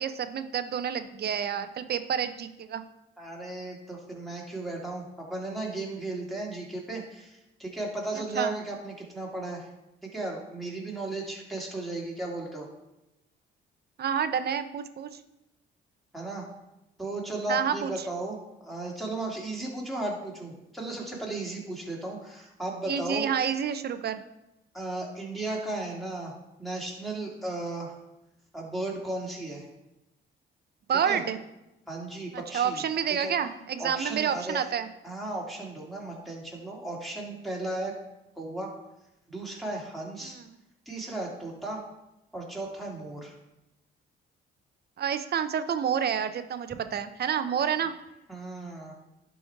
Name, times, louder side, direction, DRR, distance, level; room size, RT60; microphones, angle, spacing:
voice 1, 0.0-2.8 8.4-8.5 14.0-15.1 17.5-17.9 22.9-24.2 30.9-31.4 32.5-34.9 40.2-40.4 45.0-47.9, right 8 dB, 55° right, 10 dB, 0.7 m, -29 dB
voice 2, 3.2-9.7 10.0-12.7 16.1-16.5 17.0-23.3 24.7-26.3 26.6-28.0 28.5-29.7 31.0-31.2 31.9-33.3 33.8-34.7 35.0-37.9 38.4-38.7 39.3-40.4 40.9-41.8 42.3-43.4 48.3-48.9, right 2 dB, ahead, -2 dB, 2.5 m, -35 dB
11.0 x 4.3 x 4.6 m, 0.92 s
cardioid pair, 90°, 20 cm